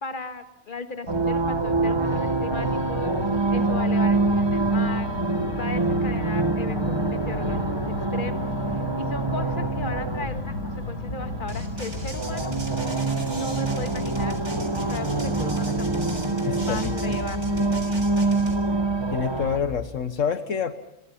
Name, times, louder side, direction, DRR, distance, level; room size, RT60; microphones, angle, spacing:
voice 1, 0.0-3.1 3.5-5.1 5.5-12.5 13.3-14.4 14.7-16.2 16.6-18.2, left 4 dB, 40° left, 7 dB, 2.0 m, -37 dB
sound 1, 1.1-19.8, left 2 dB, 90° left, 2.1 m, -34 dB
sound 2, 1.1-19.6, right 3 dB, 20° right, 1.1 m, -26 dB
sound 3, 11.5-18.6, right 1 dB, 60° right, 4.3 m, -39 dB
voice 2, 16.4-16.9 19.1-20.7, left 7 dB, 70° left, 9 dB, 1.5 m, -27 dB
29.5 x 23.5 x 5.7 m, 0.84 s
omnidirectional pair, 1.4 m